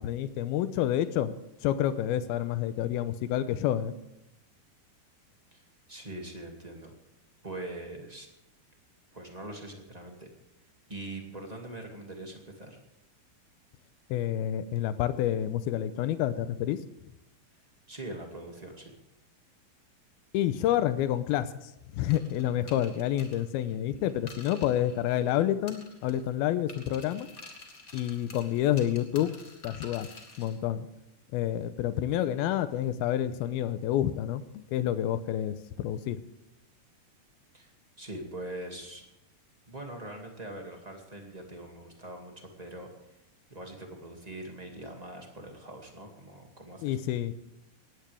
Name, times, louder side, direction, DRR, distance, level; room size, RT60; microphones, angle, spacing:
voice 1, 0.0-1.3 1.6-3.9 14.1-16.8 20.3-21.5 21.9-27.3 27.9-29.3 29.6-30.1 30.4-30.9 31.3-36.2 46.8-47.3, left 11 dB, 85° left, 12 dB, 2.7 m, -28 dB
voice 2, 5.5-6.9 7.4-8.3 9.1-10.3 10.9-12.8 17.9-18.9 37.5-39.0 39.7-42.9 43.5-47.0, right 1 dB, 15° right, 1 dB, 1.4 m, -42 dB
sound 1, 22.1-25.4 25.7-26.3 26.7-30.6, left 3 dB, 35° left, 1.6 m, -49 dB
19.5 x 16.0 x 3.5 m, 0.86 s
omnidirectional pair, 4.4 m